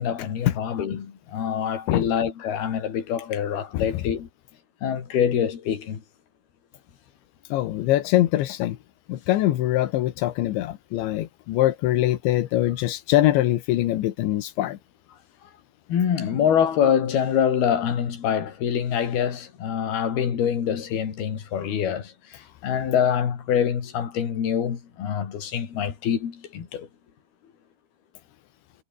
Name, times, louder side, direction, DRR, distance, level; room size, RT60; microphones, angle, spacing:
voice 1, 0.0-4.3 4.8-6.0 15.9-22.1 22.6-26.9, left 8 dB, 60° left, 5.1 m, -25 dB
voice 2, 7.5-8.8 9.1-14.8, left 14 dB, 85° left, 3.7 m, -23 dB
omnidirectional pair, 5.1 m